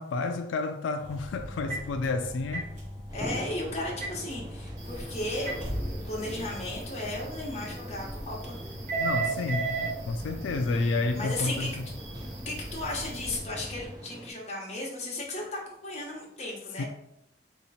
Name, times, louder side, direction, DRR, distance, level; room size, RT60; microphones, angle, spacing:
voice 1, 0.0-2.7 9.0-11.8 16.8-16.9, left 3 dB, 85° left, 0.3 m, -30 dB
sound 1, 1.0-13.9, right 2 dB, 40° right, 1.2 m, -37 dB
voice 2, 3.1-8.6 11.1-11.7 12.4-16.8, left 2 dB, 35° left, 1.1 m, -35 dB
sound 2, 3.1-14.3, right 1 dB, 20° right, 0.5 m, -44 dB
sound 3, 4.8-13.4, right 1 dB, 60° right, 1.2 m, -48 dB
3.6 x 2.9 x 4.2 m
head